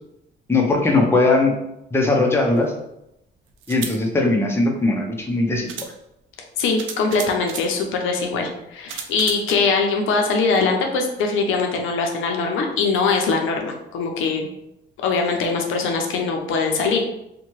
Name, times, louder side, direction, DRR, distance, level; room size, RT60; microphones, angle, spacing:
voice 1, 0.5-1.5 1.9-2.7 3.7-5.7, left 2 dB, 10° left, 1 dB, 0.5 m, -19 dB
sound 1, 2.6-2.7 3.6-4.0 5.1-5.2 5.7-5.9 6.8-7.7 8.9-9.5, right 7 dB, 80° right, 0.4 m, -33 dB
voice 2, 6.6-14.5 15.0-17.0, left 4 dB, 85° left, 3 dB, 0.5 m, -22 dB
2.7 x 2.2 x 3.0 m, 0.83 s
cardioid pair, 90°, 20 cm